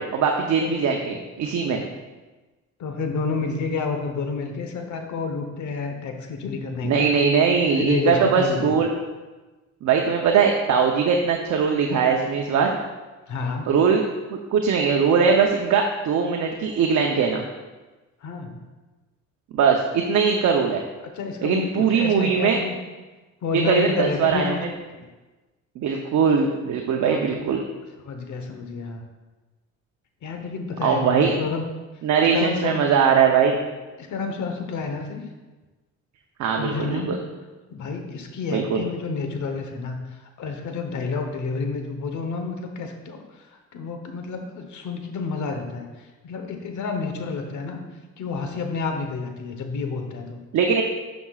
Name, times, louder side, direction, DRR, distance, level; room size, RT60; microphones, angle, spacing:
voice 1, 0.0-1.8 6.8-8.9 9.8-12.7 13.7-14.0 14.3-17.5 19.5-20.8 21.4-22.6 23.5-24.6 25.8-27.6 30.8-31.3 32.0-33.6 36.4-37.2 38.5-38.8 50.5-50.8, right 6 dB, 70° right, 2 dB, 0.8 m, -21 dB
voice 2, 2.8-7.1 7.7-8.7 13.3-13.7 18.2-18.6 21.0-22.7 23.4-24.6 24.9-25.1 27.0-27.3 28.0-29.0 30.2-31.6 32.3-32.8 34.0-35.2 36.5-37.2 37.7-47.8 48.2-50.4, left 4 dB, 75° left, 5 dB, 1.1 m, -30 dB
11.5 x 6.1 x 2.4 m, 1.2 s
cardioid pair, 90°, 30 cm